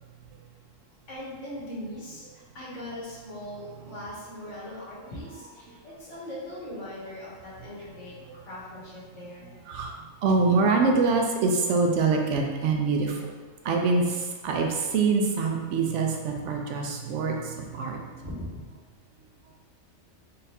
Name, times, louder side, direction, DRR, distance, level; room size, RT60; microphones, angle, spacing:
voice 1, 1.1-9.6 18.2-18.6, left 1 dB, 75° left, -7 dB, 1.5 m, -40 dB
voice 2, 4.7-5.1 5.7-5.8 8.3-8.4 9.7-13.2 13.6-18.0, right 4 dB, 75° right, 2 dB, 0.9 m, -25 dB
3.9 x 3.3 x 2.7 m, 1.5 s
omnidirectional pair, 1.3 m